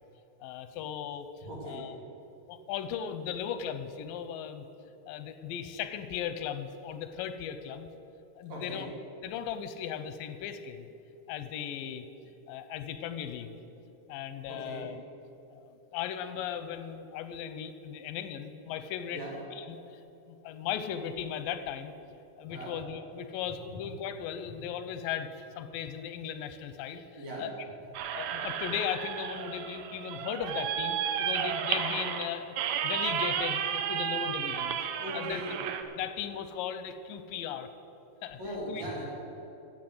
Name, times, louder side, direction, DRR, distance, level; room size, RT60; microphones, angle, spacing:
voice 1, 0.4-1.3 1.6-2.0 2.5-4.7 5.1-7.9 8.4-8.9 9.2-10.9 11.3-12.1 12.5-13.5 14.1-15.0 15.5-19.2 19.5-20.0 20.3-21.9 22.4-27.5 28.1-32.5 32.8-34.8 35.1-35.4 36.0-37.7 38.2-38.4 38.7-38.8, left 9 dB, 90° left, 10 dB, 2.4 m, -37 dB
voice 2, 1.4-1.9 8.5-8.9 14.5-14.8 19.1-19.3 22.5-22.7 27.1-27.4 35.0-35.6 38.4-39.1, equal, 55° right, -4 dB, 3.6 m, -39 dB
sound 1, 27.9-35.8, right 8 dB, 75° right, 1.7 m, -32 dB
13.0 x 7.5 x 7.9 m, 2.8 s
omnidirectional pair, 3.8 m